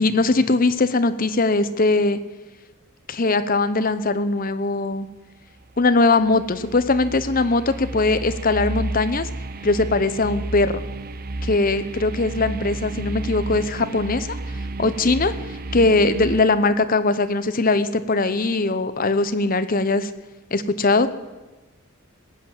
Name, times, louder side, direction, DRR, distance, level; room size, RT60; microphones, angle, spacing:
voice 1, 0.0-2.2 3.1-5.1 5.8-9.3 9.6-10.8 11.4-14.4 14.8-15.3 15.7-20.1 20.5-21.1, left 3 dB, 40° left, 12 dB, 0.9 m, -20 dB
sound 1, 5.8-16.4, right 2 dB, 45° right, 0.7 m, -32 dB
19.0 x 9.0 x 7.7 m, 1.2 s
head